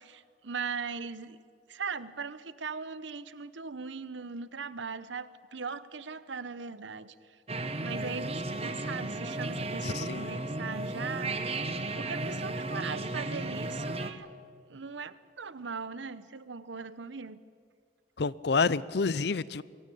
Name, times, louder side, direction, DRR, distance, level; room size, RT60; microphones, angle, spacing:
voice 1, 0.0-1.4 1.7-7.4 7.8-11.6 11.9-14.3 14.7-17.4, right 5 dB, 75° right, 15 dB, 0.9 m, -39 dB
sound 1, 7.5-14.1, right 2 dB, 30° right, 1.1 m, -34 dB
voice 2, 9.8-10.3 18.2-19.6, left 4 dB, 60° left, 20 dB, 0.5 m, -28 dB
23.0 x 16.5 x 8.7 m, 2.1 s
head